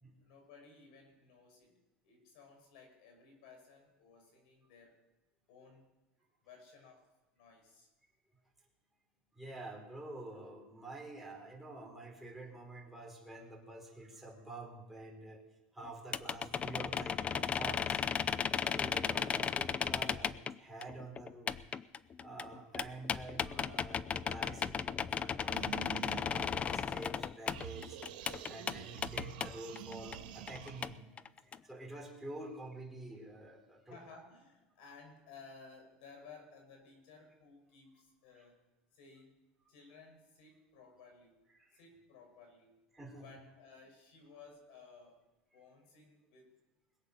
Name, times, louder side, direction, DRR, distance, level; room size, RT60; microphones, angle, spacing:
voice 1, 0.2-1.7 2.0-4.9 5.5-5.9 6.4-7.1 7.3-7.9 33.9-38.6 38.9-39.4 39.7-41.4 41.7-42.8 43.2-45.2 45.5-46.5, left 4 dB, 75° left, 3 dB, 5.8 m, -57 dB
voice 2, 9.4-15.5 15.7-18.0 18.4-21.6 22.2-28.0 28.4-31.1 31.4-34.0 38.4-38.5 41.6-41.8 42.9-43.4, right 2 dB, 5° right, -1 dB, 3.8 m, -48 dB
sound 1, 16.1-20.5 20.8-28.8 29.0-30.2 30.5-30.9 31.2-31.6, left 7 dB, 25° left, 0.5 m, -35 dB
sound 2, 25.5-27.1 27.5-31.0, right 10 dB, 85° right, 1.7 m, -48 dB
21.5 x 8.2 x 6.4 m, 1.1 s
supercardioid pair, 120°, 5 cm